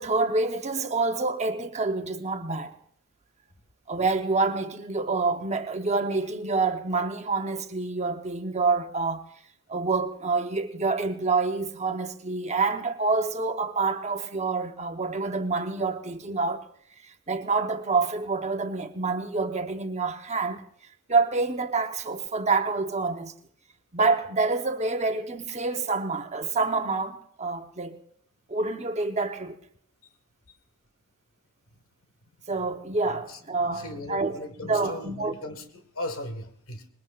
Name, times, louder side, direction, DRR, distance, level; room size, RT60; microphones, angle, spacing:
voice 1, 0.0-2.7 3.9-9.2 9.7-16.7 17.3-20.6 21.1-23.3 23.9-28.0 28.5-29.6 32.5-34.3 34.6-35.4, right 3 dB, 30° right, 1.0 m, -27 dB
voice 2, 33.1-36.9, left 1 dB, 85° left, 1.7 m, -38 dB
25.5 x 21.5 x 2.5 m
head